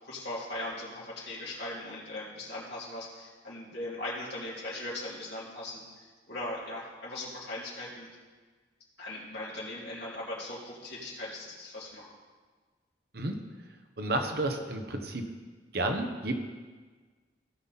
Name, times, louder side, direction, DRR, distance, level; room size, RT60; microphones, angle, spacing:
voice 1, 0.0-8.1 9.0-12.1, left 1 dB, 60° left, -8 dB, 2.9 m, -39 dB
voice 2, 14.0-15.2 15.7-16.3, right 2 dB, 55° right, 5 dB, 1.0 m, -31 dB
16.5 x 5.7 x 4.1 m, 1.4 s
head